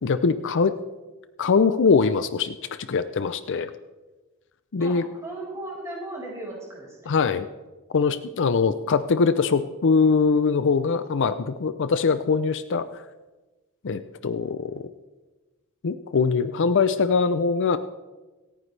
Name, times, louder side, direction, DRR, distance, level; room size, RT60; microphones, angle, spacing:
voice 1, 0.0-0.7 1.4-2.6 2.9-3.7 4.7-5.0 7.1-7.5 7.9-13.0 13.8-14.9 15.8-17.8, left 5 dB, 55° left, 12 dB, 0.5 m, -22 dB
voice 2, 4.8-7.1, right 2 dB, 15° right, -4 dB, 5.0 m, -37 dB
26.5 x 9.3 x 3.3 m, 1.2 s
head